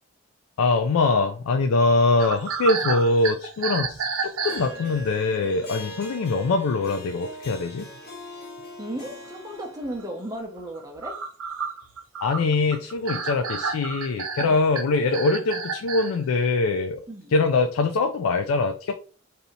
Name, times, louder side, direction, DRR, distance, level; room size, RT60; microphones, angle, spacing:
voice 1, 0.6-7.9 12.2-17.0 17.3-18.9, left 3 dB, 80° left, 0.4 m, -23 dB
sound 1, 2.2-5.1 5.9-6.0 6.3-6.5 7.1-7.2 7.4-8.0 8.6-8.7 9.0-9.1 9.8-10.0 10.4-16.2, right 5 dB, 85° right, 0.7 m, -31 dB
Harp, 4.4-10.2, left 1 dB, 45° left, 1.2 m, -41 dB
voice 2, 8.8-11.2 14.4-14.6 17.1-17.4, right 1 dB, 15° right, 0.6 m, -35 dB
2.7 x 2.7 x 4.2 m
head